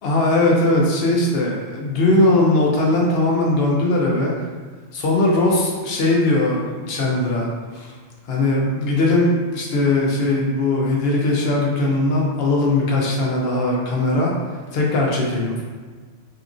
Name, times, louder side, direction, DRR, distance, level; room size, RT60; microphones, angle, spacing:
voice 1, 0.0-4.3 4.9-7.5 7.7-7.9 8.3-14.3 14.7-15.6, left 2 dB, 70° left, -2 dB, 0.8 m, -19 dB
2.8 x 2.5 x 2.4 m, 1.4 s
omnidirectional pair, 1.1 m